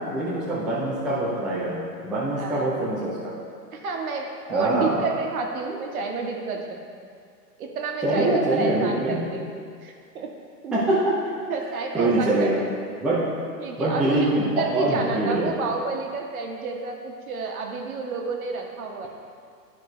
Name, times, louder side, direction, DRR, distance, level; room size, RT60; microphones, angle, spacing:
voice 1, 0.0-3.3 4.5-5.0 8.0-9.3 10.7-11.2 11.9-12.6 13.0-13.4 13.8-15.5, right 1 dB, ahead, -9 dB, 0.6 m, -24 dB
voice 2, 2.4-2.9 3.7-6.8 7.6-9.5 9.8-10.3 10.6-10.7 11.5-12.6 13.6-19.1, right 4 dB, 55° right, 1 dB, 1.4 m, -30 dB
12.0 x 4.5 x 3.2 m, 2.2 s
hypercardioid pair, 130°, 50 cm